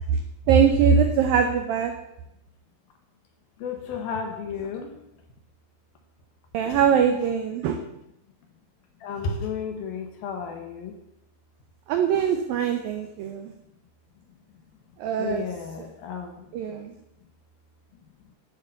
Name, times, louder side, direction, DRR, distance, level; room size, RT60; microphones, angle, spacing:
voice 1, 0.5-1.9 6.5-7.8 11.9-13.5 15.0-15.4 15.8-15.9 16.5-16.9, right 7 dB, 90° right, 6 dB, 2.0 m, -22 dB
voice 2, 3.6-4.9 6.7-6.8 9.0-10.9 15.2-16.3, left 5 dB, 70° left, 4 dB, 2.4 m, -32 dB
11.0 x 7.3 x 6.8 m, 0.83 s
omnidirectional pair, 5.3 m